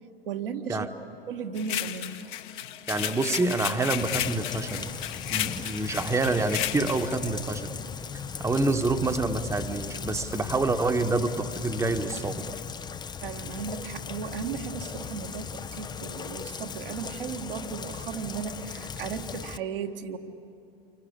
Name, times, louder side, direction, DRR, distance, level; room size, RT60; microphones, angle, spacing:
voice 1, 0.3-0.9 1.3-2.2 13.2-20.2, right 6 dB, 65° right, 3 dB, 1.7 m, -35 dB
sound 1, 1.6-7.2, left 12 dB, 55° left, 1.4 m, -33 dB
voice 2, 2.9-5.0 5.3-7.7 8.4-12.5, right 3 dB, 10° right, 6 dB, 1.2 m, -27 dB
Rain, 4.0-19.6, left 6 dB, 15° left, 0.6 m, -38 dB
28.5 x 24.5 x 8.7 m, 2.6 s
figure-of-eight pair, 85°, 29 cm